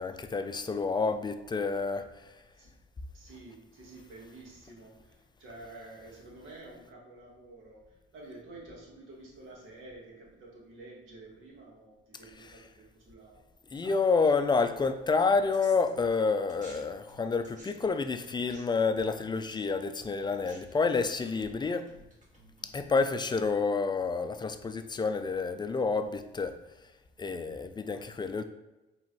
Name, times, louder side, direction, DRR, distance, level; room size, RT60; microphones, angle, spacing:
voice 1, 0.0-2.1 13.7-21.9 22.7-26.6 27.2-28.4, left 4 dB, 20° left, 8 dB, 0.3 m, -29 dB
voice 2, 3.1-13.4 13.7-14.1, right 2 dB, 85° right, -3 dB, 1.4 m, -50 dB
sound 1, 15.2-16.8 17.1-22.8, right 1 dB, 40° right, 1.4 m, -55 dB
4.5 x 3.0 x 3.0 m, 1.0 s
cardioid pair, 90°, 20 cm